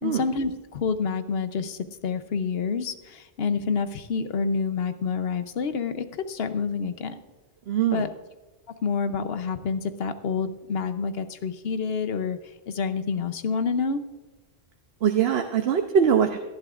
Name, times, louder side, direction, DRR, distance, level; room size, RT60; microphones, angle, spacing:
voice 1, 0.0-7.2 7.9-8.1 8.8-12.4 12.7-14.0, left 5 dB, 75° left, 10 dB, 1.0 m, -28 dB
voice 2, 7.7-8.1 15.0-16.4, right 8 dB, 75° right, 5 dB, 1.0 m, -22 dB
18.0 x 11.5 x 2.4 m, 1.2 s
omnidirectional pair, 1.0 m